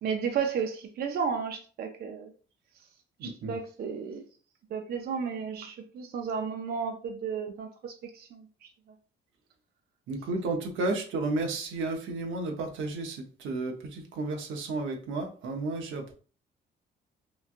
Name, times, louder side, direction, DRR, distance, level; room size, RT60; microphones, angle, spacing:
voice 1, 0.0-2.3 3.2-4.2 4.7-8.4, right 6 dB, 50° right, 0.4 m, -33 dB
voice 2, 3.2-3.5 10.1-16.1, right 2 dB, 80° right, 0.7 m, -32 dB
3.0 x 2.3 x 2.4 m
cardioid pair, 90°, 20 cm